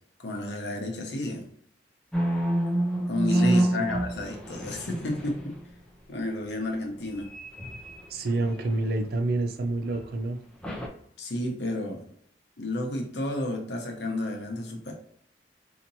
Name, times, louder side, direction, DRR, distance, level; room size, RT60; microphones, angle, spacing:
voice 1, 0.2-1.5 3.1-5.6 6.1-7.3 11.2-12.0 12.6-14.9, left 1 dB, 70° left, 1 dB, 1.0 m, -31 dB
sound 1, 2.1-5.7 7.0-9.3 9.9-10.1 10.6-10.9, right 1 dB, 5° left, 0.6 m, -28 dB
voice 2, 3.3-3.9 8.1-10.4, right 2 dB, 60° right, 7 dB, 0.5 m, -28 dB
4.3 x 2.9 x 2.7 m, 0.65 s
head